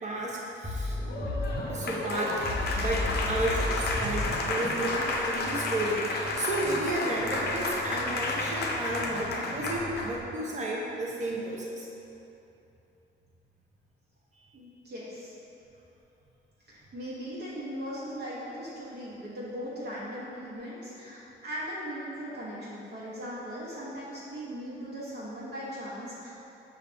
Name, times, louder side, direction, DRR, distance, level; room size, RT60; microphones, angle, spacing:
voice 1, 0.0-1.0 1.7-2.4 2.7-11.9, right 2 dB, 35° right, -3 dB, 0.8 m, -32 dB
sound 1, 0.6-10.3, left 1 dB, 5° left, 0.7 m, -36 dB
Applause, 1.0-10.2, left 2 dB, 55° left, 0.5 m, -32 dB
voice 2, 14.5-15.3 16.7-26.3, equal, 60° right, -8 dB, 1.1 m, -39 dB
5.5 x 2.5 x 3.4 m, 2.9 s
cardioid pair, 90°, 20 cm